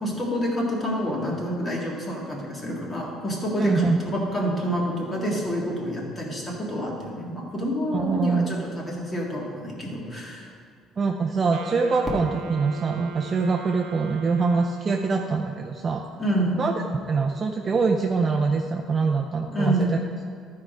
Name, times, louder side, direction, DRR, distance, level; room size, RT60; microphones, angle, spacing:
voice 1, 0.0-10.5 16.2-16.7 19.5-20.0, equal, 20° left, -2 dB, 1.9 m, -28 dB
voice 2, 3.6-4.0 7.9-8.7 11.0-16.0 16.6-16.7 17.1-19.8, right 4 dB, 30° right, 1 dB, 0.5 m, -24 dB
Wind instrument woodwind instrument, 11.5-15.4, right 6 dB, 75° right, 0.8 m, -40 dB
Fireworks, 12.0-14.9, right 1 dB, 5° right, 1.2 m, -39 dB
12.5 x 4.7 x 5.0 m, 2.3 s
cardioid pair, 145°, 0 cm